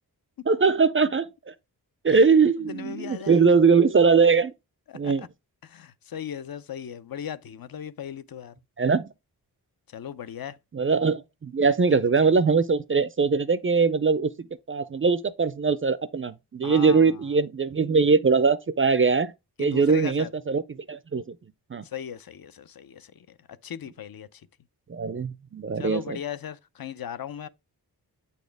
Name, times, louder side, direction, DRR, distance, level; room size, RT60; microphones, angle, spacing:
voice 1, 0.5-1.5 2.0-4.5 4.9-5.3 8.8-9.1 10.7-19.3 19.6-20.6 20.9-21.2 21.7-21.8 24.9-26.2, right 5 dB, 35° right, 0.4 m, -21 dB
voice 2, 2.6-3.5 4.9-5.3 5.6-8.6 9.9-10.6 11.9-12.3 16.6-17.2 19.6-20.3 21.8-24.5 25.8-27.5, left 9 dB, 60° left, 0.6 m, -38 dB
8.4 x 4.2 x 3.3 m
wide cardioid pair, 150°, 40 cm